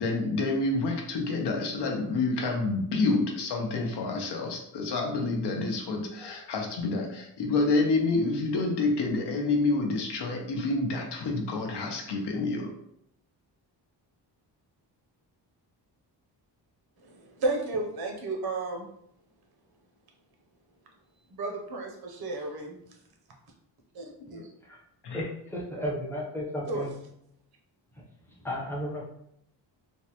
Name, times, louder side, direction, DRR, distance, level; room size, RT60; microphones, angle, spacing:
voice 1, 0.0-12.7 24.3-24.4 25.0-25.3, left 3 dB, 70° left, 2 dB, 0.7 m, -28 dB
voice 2, 17.0-18.9 21.3-22.8 23.9-24.5 26.7-26.8, right 2 dB, 60° right, 1 dB, 0.8 m, -33 dB
voice 3, 25.1-26.9 28.4-29.0, equal, 5° left, -4 dB, 0.6 m, -33 dB
3.5 x 2.1 x 2.8 m, 0.74 s
wide cardioid pair, 170°, 43 cm